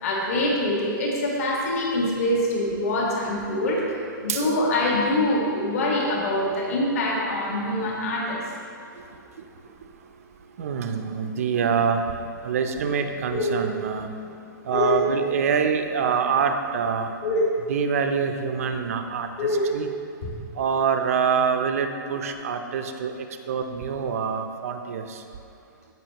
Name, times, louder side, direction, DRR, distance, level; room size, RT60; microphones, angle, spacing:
voice 1, 0.0-3.8 4.2-8.4 13.3-13.5 14.7-15.0 17.2-17.4 19.4-19.7, left 1 dB, 45° left, -3 dB, 1.9 m, -24 dB
voice 2, 10.6-12.0 12.4-14.1 14.6-17.1 17.7-19.9 20.5-25.2, right 6 dB, 45° right, 6 dB, 0.5 m, -25 dB
16.0 x 5.8 x 3.0 m, 2.4 s
hypercardioid pair, 175°, 11 cm